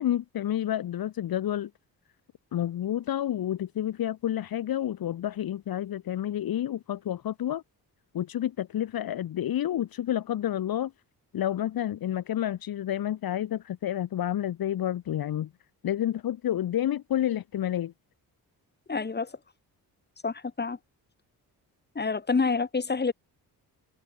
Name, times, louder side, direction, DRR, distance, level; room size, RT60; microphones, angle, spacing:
voice 1, 0.0-1.7 2.5-7.6 8.1-10.9 11.3-15.5 15.8-17.9, left 11 dB, 65° left, 1.3 m, -29 dB
voice 2, 18.9-19.3 20.2-20.8 21.9-23.1, left 4 dB, 25° left, 3.1 m, -27 dB
wide cardioid pair, 130°, 38 cm